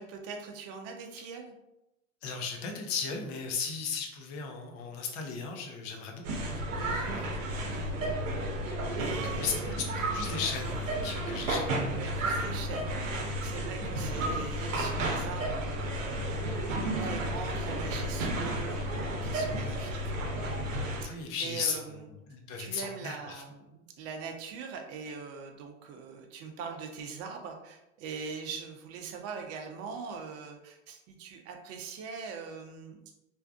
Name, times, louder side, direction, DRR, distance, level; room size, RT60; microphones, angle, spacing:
voice 1, 0.0-1.5 6.8-7.3 7.6-7.9 9.0-9.7 11.9-20.7 21.0-22.1 22.6-33.0, right 5 dB, 40° right, 4 dB, 0.6 m, -42 dB
voice 2, 2.2-6.2 9.2-11.8 21.0-21.8 22.3-23.4, left 5 dB, 50° left, 2 dB, 0.8 m, -36 dB
sound 1, 6.2-21.1, right 1 dB, 80° right, 0.7 m, -32 dB
3.3 x 2.6 x 2.4 m, 0.90 s
hypercardioid pair, 85°, 38 cm